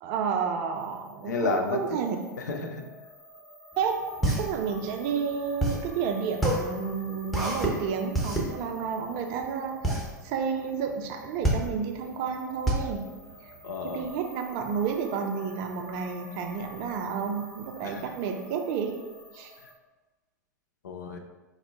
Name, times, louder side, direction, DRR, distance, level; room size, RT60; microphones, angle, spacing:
voice 1, 0.0-2.2 3.8-13.0 13.4-13.5 13.8-18.9 19.3-19.5, right 6 dB, 40° right, 3 dB, 0.4 m, -31 dB
sound 1, 0.7-19.7, equal, 20° left, 1.4 m, -50 dB
voice 2, 1.2-2.0 2.4-2.8 13.6-14.1 17.8-18.1 20.8-21.2, left 3 dB, 65° left, 4 dB, 0.4 m, -31 dB
sound 2, 3.7-14.1, right 1 dB, ahead, 0.7 m, -29 dB
3.6 x 2.1 x 3.4 m, 1.2 s
figure-of-eight pair, 90°, 10 cm